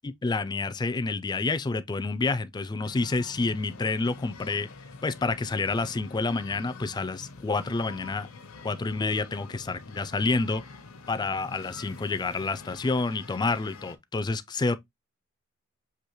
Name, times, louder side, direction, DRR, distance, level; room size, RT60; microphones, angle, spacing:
voice 1, 0.0-4.7 5.0-8.3 8.6-10.6 11.1-14.8, left 3 dB, 20° left, 0.3 m, -28 dB
sound 1, 2.8-14.0, left 4 dB, 75° left, 0.7 m, -46 dB
6.2 x 2.9 x 2.9 m
head